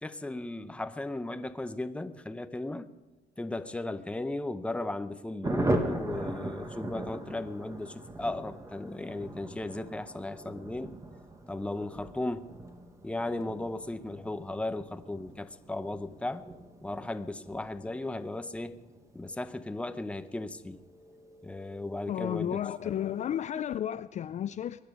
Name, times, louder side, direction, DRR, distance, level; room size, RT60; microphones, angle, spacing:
voice 1, 0.0-2.9 3.4-11.0 11.5-12.5 13.0-16.5 16.8-18.8 19.1-23.1, left 2 dB, 5° left, 11 dB, 0.8 m, -36 dB
Thunder, 5.4-21.5 21.8-21.9 22.2-22.3 22.6-23.0, right 1 dB, 20° right, 1.7 m, -39 dB
voice 2, 22.1-24.8, left 10 dB, 45° left, 13 dB, 0.4 m, -33 dB
22.5 x 10.5 x 5.3 m, 1.1 s
cardioid pair, 110°, 17 cm